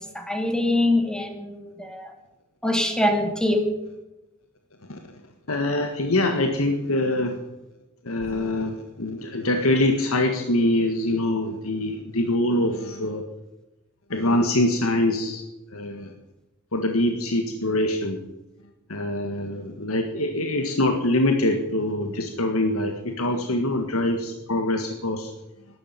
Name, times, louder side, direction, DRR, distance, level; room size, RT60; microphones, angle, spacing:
voice 1, 0.0-2.1 2.6-3.7, left 1 dB, 5° left, 4 dB, 2.4 m, -24 dB
voice 2, 5.5-7.4 8.0-13.2 14.1-15.4 15.7-16.1 16.7-18.2 18.9-25.3, left 1 dB, 75° left, 5 dB, 1.7 m, -24 dB
12.5 x 11.5 x 9.3 m, 0.99 s
head